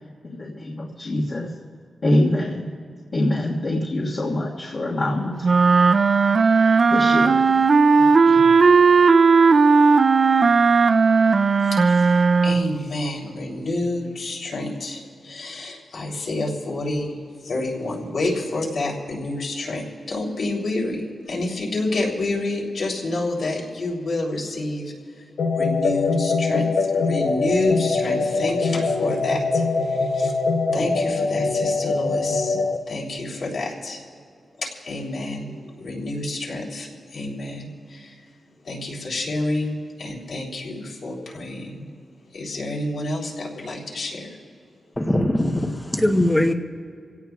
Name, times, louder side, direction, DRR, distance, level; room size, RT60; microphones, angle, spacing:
voice 1, 0.2-1.5 2.0-2.7 3.1-5.5 6.9-7.6 8.2-8.5, left 1 dB, 40° left, -5 dB, 1.6 m, -24 dB
sound 1, 5.4-12.8, right 4 dB, 40° right, 0.3 m, -16 dB
voice 2, 11.6-17.2 17.4-25.2 25.5-26.6 26.9-30.3 30.7-34.0 34.6-38.2 38.6-41.9 42.3-44.3, left 2 dB, 60° left, -2 dB, 3.3 m, -28 dB
sound 2, 25.4-32.8, left 4 dB, 75° left, 0.9 m, -23 dB
voice 3, 45.0-46.5, left 1 dB, 10° left, 5 dB, 0.9 m, -20 dB
27.5 x 17.0 x 2.4 m, 2.2 s
wide cardioid pair, 170°, 0 cm